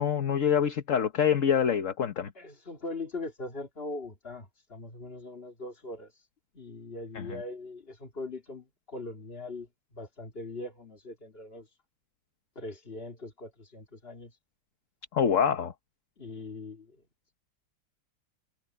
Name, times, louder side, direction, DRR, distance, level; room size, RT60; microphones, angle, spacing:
voice 1, 0.0-2.3 7.1-7.4 15.1-15.7, left 8 dB, 45° left, 1.3 m, -26 dB
voice 2, 2.3-6.1 6.5-9.7 9.9-11.7 12.6-14.3 16.2-17.0, left 2 dB, 30° left, 2.6 m, -41 dB
omnidirectional pair, 2.2 m